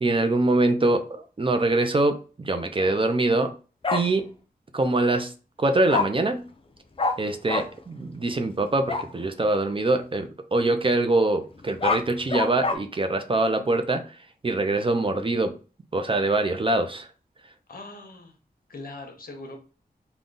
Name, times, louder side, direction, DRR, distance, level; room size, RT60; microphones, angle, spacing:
voice 1, 0.0-3.5 3.9-4.3 4.7-5.3 5.6-6.5 7.2-14.0 14.4-15.5 15.9-17.1, right 2 dB, 30° right, 7 dB, 0.5 m, -24 dB
voice 2, 2.8-3.2 17.7-18.4 18.7-19.6, left 2 dB, 60° left, 3 dB, 0.9 m, -41 dB
Bark, 3.8-4.0 5.9-6.0 7.0-7.1 7.5-7.6 8.9-9.1 11.6-12.7, left 4 dB, 35° left, 0.5 m, -24 dB
3.7 x 2.3 x 3.8 m, 0.35 s
wide cardioid pair, 100°, 17 cm